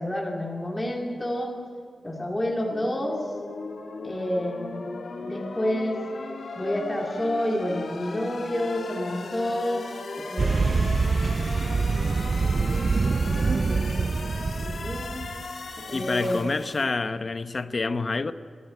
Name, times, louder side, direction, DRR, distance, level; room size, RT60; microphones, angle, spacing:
voice 1, 0.0-1.6 2.0-3.2 4.0-4.9 5.2-6.0 6.6-9.8 10.2-11.6 13.2-14.0 14.6-15.3 15.8-16.4, left 1 dB, 15° left, -2 dB, 2.3 m, -29 dB
sound 1, 2.7-16.8, left 3 dB, 75° left, 2.5 m, -37 dB
sound 2, 10.4-15.5, right 4 dB, 45° right, 0.4 m, -25 dB
voice 2, 15.9-18.3, left 3 dB, 40° left, 11 dB, 0.9 m, -28 dB
24.5 x 13.0 x 9.8 m, 2.2 s
wide cardioid pair, 120°, 0 cm